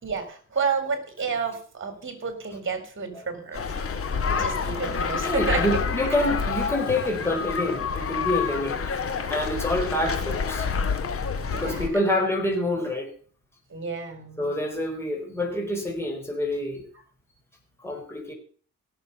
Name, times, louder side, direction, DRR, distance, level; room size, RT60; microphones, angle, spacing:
voice 1, 0.0-3.7 4.3-6.3 11.4-12.1 13.7-14.5 16.9-17.0, right 5 dB, 40° right, 8 dB, 4.1 m, -31 dB
sound 1, 3.5-11.9, left 5 dB, 45° left, 2.3 m, -28 dB
voice 2, 5.2-8.8 9.3-10.7 11.5-13.1 14.4-16.9 17.8-18.3, left 1 dB, 10° left, 1 dB, 4.4 m, -27 dB
17.0 x 7.1 x 6.9 m, 0.43 s
cardioid pair, 90°, 30 cm